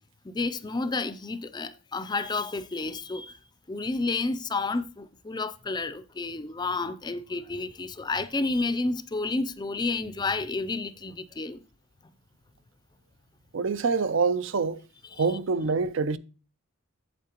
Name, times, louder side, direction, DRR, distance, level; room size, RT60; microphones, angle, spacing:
voice 1, 0.2-3.4 3.7-11.6 15.2-15.3, left 3 dB, 20° left, 0.4 m, -30 dB
voice 2, 13.5-14.8 15.2-16.2, right 4 dB, 65° right, 0.5 m, -25 dB
8.4 x 7.6 x 2.9 m
head